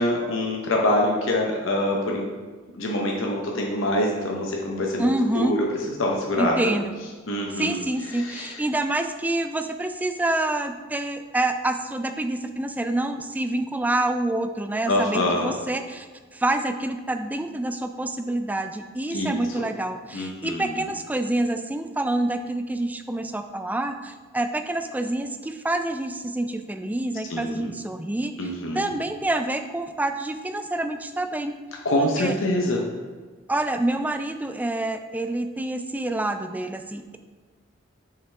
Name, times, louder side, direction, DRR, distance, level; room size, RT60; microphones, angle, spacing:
voice 1, 0.0-2.3 2.8-5.6 6.0-6.7 7.3-7.8 8.1-8.6 14.9-15.5 19.1-19.6 20.1-20.9 27.3-27.7 28.4-28.9 31.8-32.8, left 1 dB, 80° left, -1 dB, 0.8 m, -25 dB
voice 2, 5.0-5.5 6.4-6.9 7.5-16.1 16.3-31.5 32.0-32.3 33.5-37.2, right 1 dB, 10° right, 7 dB, 0.3 m, -27 dB
6.8 x 5.7 x 3.3 m, 1.5 s
head